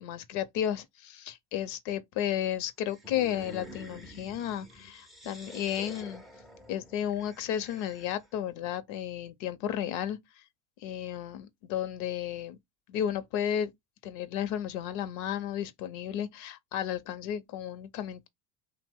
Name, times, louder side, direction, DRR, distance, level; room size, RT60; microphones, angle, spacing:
voice 1, 0.0-6.2 6.7-10.2 10.8-12.6 12.9-13.7 14.0-18.3, left 10 dB, 65° left, 0.6 m, -33 dB
sound 1, 2.9-8.4, equal, ahead, 0.3 m, -48 dB
2.8 x 2.1 x 3.4 m
supercardioid pair, 95°, 48 cm